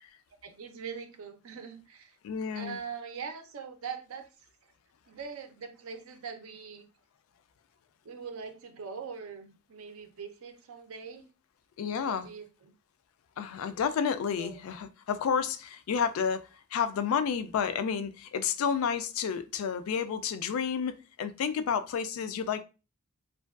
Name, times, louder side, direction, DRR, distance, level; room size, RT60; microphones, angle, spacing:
voice 1, 0.4-2.2 2.5-4.7 5.1-6.9 8.0-11.3 12.0-12.7 14.4-14.7, right 6 dB, 75° right, 0.5 m, -42 dB
voice 2, 2.2-2.8 11.8-12.3 13.4-22.6, left 7 dB, 75° left, 0.3 m, -30 dB
2.4 x 2.2 x 2.3 m
head